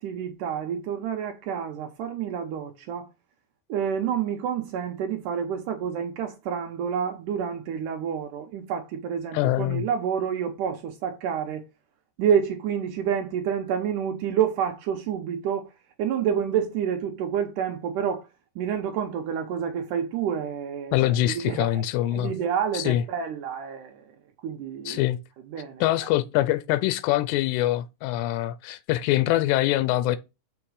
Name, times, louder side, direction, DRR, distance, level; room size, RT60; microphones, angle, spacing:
voice 1, 0.0-3.1 3.7-11.6 12.2-15.7 16.0-18.3 18.6-21.8 22.1-24.2 24.4-25.0 25.5-25.8, right 8 dB, 85° right, 1.8 m, -28 dB
voice 2, 9.3-9.9 20.9-22.3 22.7-23.0 24.9-25.2 25.8-30.2, left 14 dB, 85° left, 2.8 m, -24 dB
7.1 x 5.8 x 4.8 m
omnidirectional pair, 4.9 m